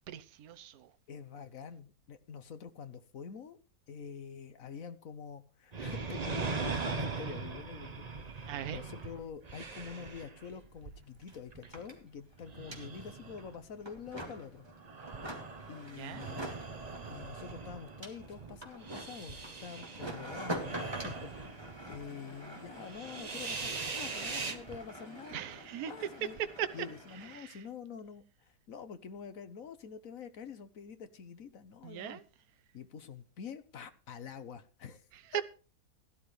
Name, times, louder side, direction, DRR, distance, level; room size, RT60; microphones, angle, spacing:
voice 1, 0.1-0.9 8.5-8.8 16.0-16.2 25.3-25.9 26.6-26.7 27.2-27.6 31.8-32.2 35.3-35.4, right 10 dB, 65° right, 1.3 m, -39 dB
voice 2, 1.1-3.6 3.9-14.7 15.7-16.5 17.1-25.4 25.8-26.4 26.7-32.2 32.7-35.1 35.3-35.4, left 6 dB, 60° left, 1.4 m, -46 dB
sound 1, 5.7-12.0 12.4-14.1 14.7-22.1 22.3-22.4 22.7-24.8, right 4 dB, 30° right, 0.9 m, -41 dB
sound 2, 10.5-10.6 10.8-27.4, right 1 dB, 15° right, 2.6 m, -46 dB
16.5 x 11.5 x 3.2 m
omnidirectional pair, 1.8 m